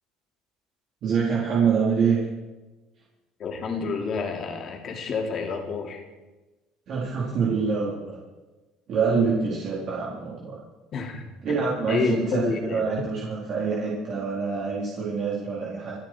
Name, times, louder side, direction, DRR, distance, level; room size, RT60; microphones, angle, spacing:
voice 1, 1.0-2.2 6.9-8.2 8.9-10.6 11.4-16.0, right 5 dB, 50° right, -5 dB, 4.2 m, -25 dB
voice 2, 3.4-6.0 10.9-11.6 11.9-12.8, left 5 dB, 40° left, 2 dB, 3.3 m, -29 dB
28.5 x 10.5 x 4.7 m, 1.1 s
cardioid pair, 135°, 0 cm